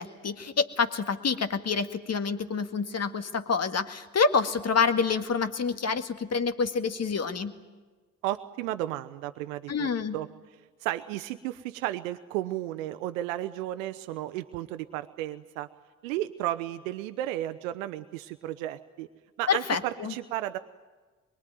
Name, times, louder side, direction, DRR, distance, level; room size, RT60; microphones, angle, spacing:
voice 1, 0.0-7.5 9.7-10.2 19.5-20.1, left 5 dB, 40° left, 9 dB, 1.9 m, -27 dB
voice 2, 8.2-10.3 10.8-15.7 16.0-19.1 19.4-20.6, right 14 dB, 75° right, 10 dB, 0.8 m, -33 dB
25.0 x 23.0 x 9.4 m, 1.3 s
figure-of-eight pair, 45°, 40 cm